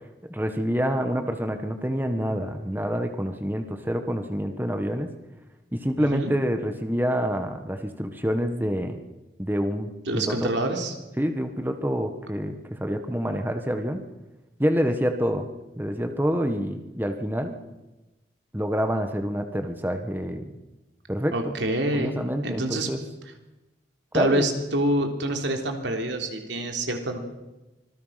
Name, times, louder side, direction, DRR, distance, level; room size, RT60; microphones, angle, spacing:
voice 1, 0.3-5.1 5.7-9.0 9.4-10.3 11.2-14.0 14.6-15.5 15.8-17.6 18.5-20.5 21.1-21.5 21.9-23.0 24.1-24.4, equal, 10° right, 6 dB, 1.5 m, -27 dB
voice 2, 6.0-6.3 10.1-10.9 21.3-22.1 22.4-22.9 24.1-27.2, right 1 dB, 85° right, 4 dB, 3.6 m, -26 dB
25.5 x 20.0 x 5.9 m, 1.0 s
head